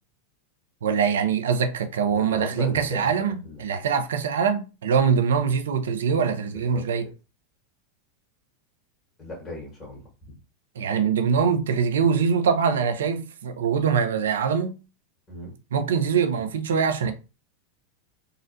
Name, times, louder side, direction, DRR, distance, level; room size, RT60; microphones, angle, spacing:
voice 1, 0.8-7.1 10.8-14.8 15.7-17.1, right 6 dB, 75° right, 0.5 m, -23 dB
voice 2, 2.1-3.7 6.5-6.9 9.2-10.4 15.3-15.6 17.0-17.1, left 1 dB, 35° left, 1.6 m, -38 dB
3.8 x 2.1 x 2.5 m
hypercardioid pair, 95°, 0 cm